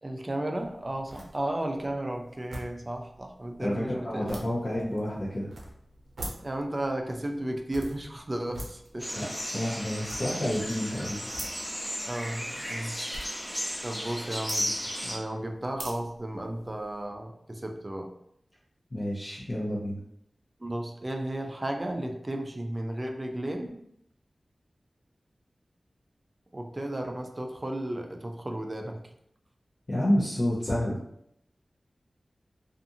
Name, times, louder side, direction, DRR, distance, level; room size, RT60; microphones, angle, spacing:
voice 1, 0.0-4.5 6.4-9.3 12.0-13.0 13.8-18.1 20.6-23.8 26.5-29.1, right 1 dB, 30° right, 3 dB, 0.4 m, -34 dB
sound 1, 0.5-17.0, right 1 dB, 90° right, 0.6 m, -46 dB
voice 2, 3.6-5.5 9.1-9.3 9.5-11.2 18.9-20.0 29.9-31.0, left 1 dB, 45° left, -9 dB, 0.7 m, -29 dB
sound 2, 9.0-15.2, equal, 5° left, 0.9 m, -35 dB
2.6 x 2.5 x 2.6 m, 0.74 s
wide cardioid pair, 75°, 0 cm